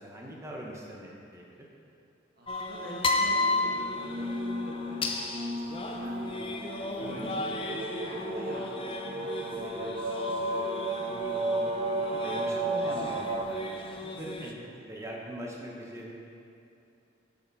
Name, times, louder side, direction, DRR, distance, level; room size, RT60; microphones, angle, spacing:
voice 1, 0.0-1.7 7.0-7.5 11.1-11.7 12.1-13.8 14.2-16.2, equal, 15° right, -2 dB, 0.9 m, -42 dB
voice 2, 2.4-6.5 7.0-7.9 8.2-10.4, right 1 dB, 50° right, -2 dB, 1.3 m, -47 dB
sound 1, 2.5-14.5, left 2 dB, 25° left, 0.4 m, -34 dB
sound 2, 3.1-13.4, right 2 dB, 30° right, 0.6 m, -34 dB
6.7 x 5.6 x 5.4 m, 2.6 s
head